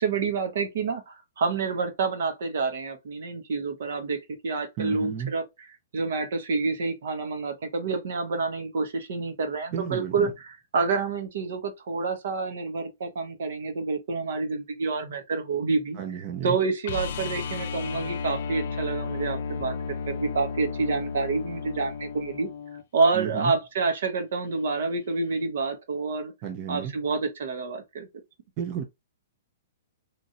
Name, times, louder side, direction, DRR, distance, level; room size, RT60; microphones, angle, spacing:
voice 1, 0.0-5.4 5.9-22.5 22.9-26.3 26.7-28.1, right 4 dB, 70° right, 1.0 m, -28 dB
voice 2, 4.8-5.3 9.7-10.3 16.0-16.6 23.1-23.6 26.4-26.9 28.6-28.8, right 8 dB, 30° right, 0.5 m, -32 dB
sound 1, 16.9-22.8 25.3-25.4, left 5 dB, 60° left, 0.4 m, -33 dB
3.0 x 2.5 x 2.6 m
hypercardioid pair, 160°, 0 cm